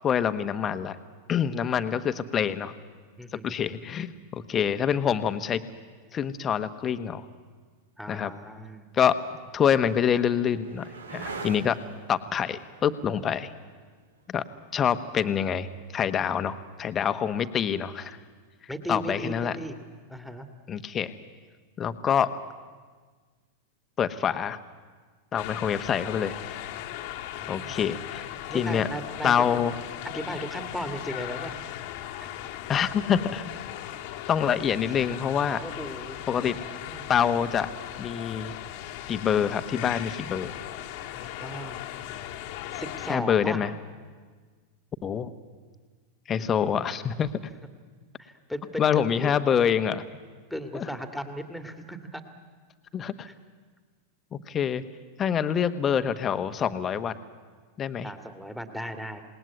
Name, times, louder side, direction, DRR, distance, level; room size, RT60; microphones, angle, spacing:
voice 1, 0.0-1.0 1.3-2.7 3.3-5.6 6.1-7.2 8.1-8.3 8.9-9.2 9.5-11.8 12.1-13.5 14.3-14.4 14.7-18.2 18.9-19.5 20.7-21.1 21.8-22.3 24.0-24.6 25.3-26.6 27.5-28.9 29.2-29.7 32.7-33.5 34.3-35.6 36.3-36.6 37.1-37.7 38.0-38.5 39.1-40.6 43.1-43.7 45.0-45.3 46.3-47.3 48.8-50.0 50.7-50.9 52.9-53.3 54.3-54.8 55.2-57.2 57.8-58.1, left 8 dB, 25° left, 11 dB, 1.3 m, -26 dB
voice 2, 3.2-3.6 8.0-8.9 18.7-19.8 20.1-20.5 27.4-27.7 28.5-29.6 30.1-31.5 32.2-32.3 34.7-34.8 35.6-37.0 41.1-41.8 42.7-43.6 48.2-49.4 50.5-52.2 53.3-53.4 58.0-59.2, equal, ahead, 7 dB, 2.2 m, -36 dB
sound 1, 9.0-16.6 18.9-19.5, right 4 dB, 70° right, 2.0 m, -45 dB
sound 2, 25.4-43.2, left 12 dB, 45° left, 1.6 m, -38 dB
28.0 x 19.5 x 9.5 m, 1.5 s
figure-of-eight pair, 90°, 0 cm